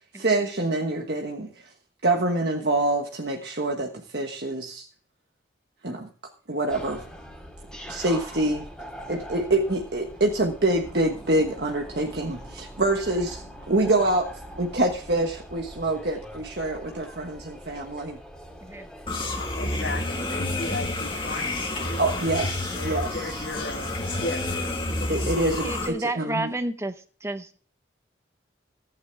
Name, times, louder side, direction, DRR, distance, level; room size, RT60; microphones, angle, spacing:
voice 1, 0.2-1.7 2.0-4.9 5.8-6.1 6.5-7.0 7.9-8.7 9.1-14.3 14.6-18.2 22.0-23.4 25.1-26.5, right 2 dB, 60° right, 2 dB, 1.4 m, -26 dB
sound 1, 6.7-26.0, equal, 5° left, 2.6 m, -43 dB
sound 2, 19.1-25.9, left 2 dB, 25° left, 2.0 m, -29 dB
voice 2, 19.4-22.3 22.7-23.9 24.2-25.1, left 2 dB, 75° left, -5 dB, 3.6 m, -36 dB
voice 3, 25.6-26.9 27.2-27.7, right 1 dB, 15° right, 10 dB, 0.7 m, -30 dB
15.0 x 9.5 x 3.5 m, 0.41 s
head